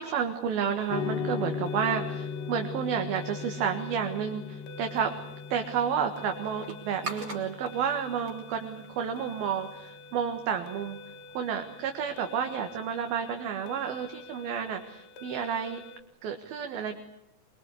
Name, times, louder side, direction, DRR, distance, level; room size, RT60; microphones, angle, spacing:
voice 1, 0.0-5.1 5.5-11.0 11.3-15.8 16.2-17.0, right 7 dB, 70° right, 4 dB, 3.4 m, -31 dB
sound 1, 0.8-16.0, left 2 dB, 80° left, 3.3 m, -48 dB
sound 2, 0.9-9.4, left 6 dB, 65° left, 3.0 m, -38 dB
sound 3, 4.8-9.9, right 2 dB, 40° right, 4.3 m, -45 dB
24.5 x 24.0 x 8.5 m, 0.81 s
omnidirectional pair, 4.5 m